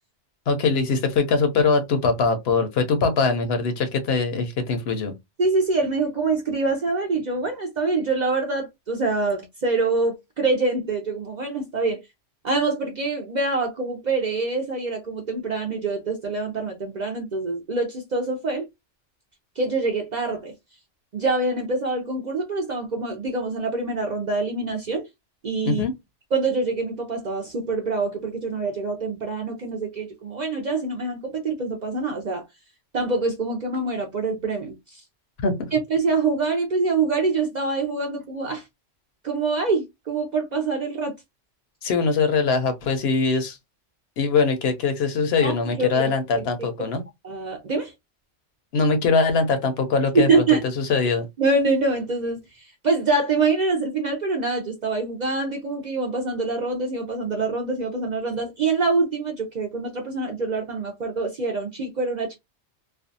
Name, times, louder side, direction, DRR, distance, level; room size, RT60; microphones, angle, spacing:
voice 1, 0.5-5.1 25.6-25.9 35.4-35.7 41.8-43.6 44.2-47.0 48.7-50.4 50.8-51.3, left 4 dB, 65° left, 0.8 m, -22 dB
voice 2, 5.4-12.0 12.4-18.7 19.6-20.5 21.1-25.1 25.4-25.8 26.3-32.4 32.9-35.0 35.7-38.6 39.2-41.1 45.4-46.0 47.2-47.9 50.1-50.6 51.4-62.3, right 3 dB, 55° right, 0.5 m, -25 dB
2.5 x 2.2 x 2.6 m
omnidirectional pair, 1.2 m